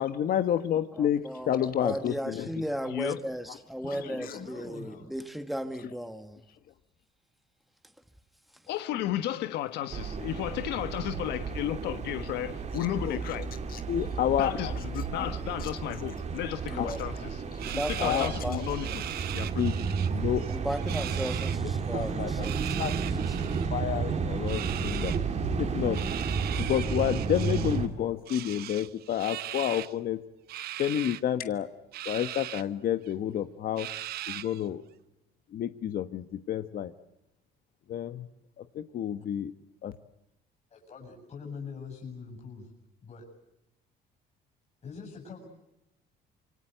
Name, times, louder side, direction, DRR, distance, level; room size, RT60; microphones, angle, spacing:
voice 1, 0.0-2.5 4.3-4.4 13.1-13.2 13.7-14.8 15.1-15.3 15.6-15.7 16.7-17.0 17.6-18.6 19.5-20.5 21.9-22.5 22.8-23.0 23.7-25.1 25.6-26.0 26.6-30.2 30.8-31.7 32.0-33.9 34.3-34.8 35.5-36.9 37.9-38.3 38.7-39.5 39.8-39.9, left 10 dB, 60° left, 1.3 m, -30 dB
voice 2, 0.9-6.4 8.5-8.6 16.7-17.0 17.6-19.0 20.5-23.7, equal, ahead, 1.7 m, -36 dB
voice 3, 3.8-5.1 17.5-17.8 23.6-23.7 40.7-42.7 43.0-43.3 44.8-45.5, left 5 dB, 40° left, 7.9 m, -43 dB
voice 4, 8.7-13.5 14.4-17.4 17.7-18.9 19.3-19.5, left 12 dB, 85° left, 1.4 m, -33 dB
sound 1, 9.9-27.9, right 5 dB, 40° right, 2.9 m, -32 dB
sound 2, 17.6-20.1 20.4-21.6 22.3-23.7 24.5-25.2 25.9-27.8 28.3-29.9 30.5-31.2 31.9-32.6 33.1-33.2 33.8-34.6, right 13 dB, 70° right, 0.9 m, -39 dB
26.5 x 24.0 x 8.0 m
cardioid pair, 110°, 17 cm